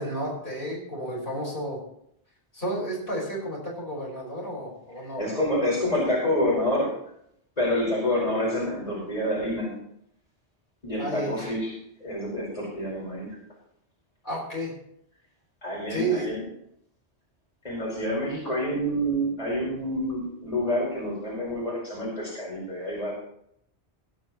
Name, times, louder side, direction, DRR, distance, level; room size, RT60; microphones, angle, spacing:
voice 1, 0.0-1.8 2.5-5.4 11.0-11.4 14.2-14.7 15.9-16.3, right 1 dB, 55° left, -4 dB, 5.7 m, -31 dB
voice 2, 5.2-6.9 7.6-9.8 10.8-11.7 12.0-13.4 15.6-16.4 17.6-23.1, left 1 dB, 35° left, -4 dB, 5.2 m, -27 dB
17.5 x 11.5 x 3.2 m, 0.71 s
omnidirectional pair, 1.1 m